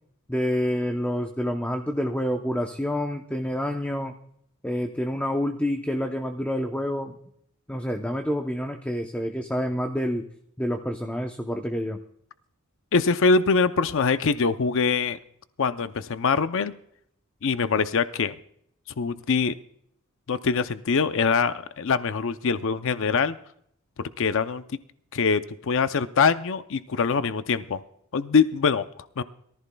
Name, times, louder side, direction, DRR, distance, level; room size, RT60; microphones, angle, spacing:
voice 1, 0.3-4.1 4.6-7.2 7.7-10.3 10.6-12.0, equal, 5° left, 4 dB, 0.7 m, -28 dB
voice 2, 12.9-15.2 15.6-16.7 17.4-18.3 19.0-19.5 20.3-23.4 24.2-24.6 25.1-27.8 28.1-28.8 29.2-29.3, left 5 dB, 65° left, 11 dB, 0.6 m, -23 dB
23.0 x 14.5 x 2.3 m, 0.69 s
head